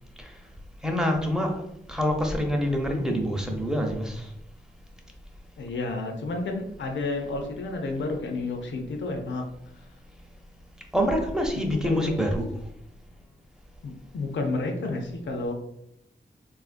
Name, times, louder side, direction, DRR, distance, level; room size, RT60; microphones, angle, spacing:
voice 1, 0.8-1.6 1.9-4.3 10.9-12.5, equal, 5° right, 1 dB, 0.6 m, -26 dB
voice 2, 5.6-9.5 11.7-12.2 13.8-15.5, left 3 dB, 75° left, 3 dB, 0.5 m, -31 dB
3.5 x 2.4 x 2.4 m, 0.76 s
wide cardioid pair, 85°, 19 cm